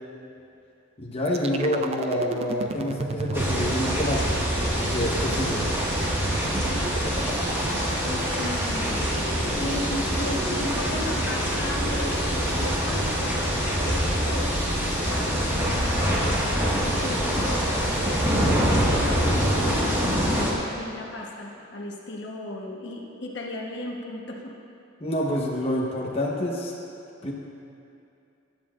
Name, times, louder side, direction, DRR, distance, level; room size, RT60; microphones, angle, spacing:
voice 1, 1.0-4.4 4.7-5.7 25.0-26.7 27.2-27.3, left 1 dB, 30° left, -3 dB, 1.0 m, -27 dB
sound 1, 1.3-11.2, right 3 dB, 30° right, 0.3 m, -34 dB
sound 2, 3.3-20.5, equal, 15° right, 1.6 m, -25 dB
voice 2, 6.7-7.5 8.0-9.2 9.6-14.6 15.0-17.2 17.8-20.4 20.7-24.5, left 1 dB, 60° left, -1 dB, 1.0 m, -36 dB
13.5 x 10.5 x 2.5 m, 2.7 s
head